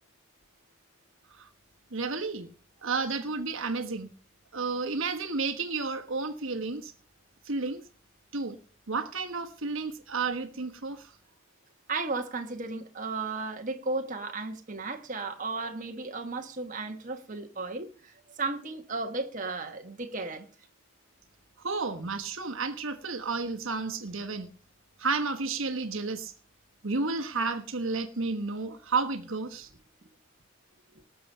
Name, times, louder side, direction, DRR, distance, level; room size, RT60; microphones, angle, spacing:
voice 1, 1.9-2.5 2.8-4.1 4.5-6.9 7.4-7.8 8.3-8.6 8.9-11.1 21.6-24.5 25.0-26.3 26.8-29.7, right 4 dB, 65° right, 1.2 m, -31 dB
voice 2, 11.9-20.5, right 3 dB, 35° right, 1.3 m, -34 dB
19.0 x 6.9 x 5.5 m
head